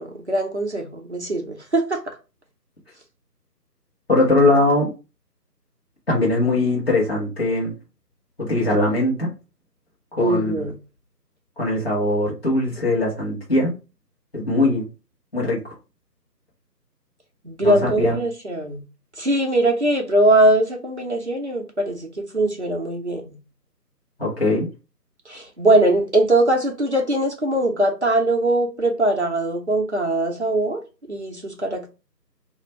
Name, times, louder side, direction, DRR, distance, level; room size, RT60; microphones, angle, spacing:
voice 1, 0.0-2.0 10.2-10.8 17.4-18.8 19.2-23.4 25.3-30.8 31.1-31.9, right 1 dB, 45° right, 0.5 m, -21 dB
voice 2, 4.1-4.9 6.1-7.7 8.4-9.3 10.1-10.6 11.6-13.7 14.3-14.9 15.3-15.6 17.6-18.2 24.2-24.7, left 2 dB, 35° left, 1.1 m, -20 dB
2.5 x 2.2 x 3.0 m
figure-of-eight pair, 160°, 50 cm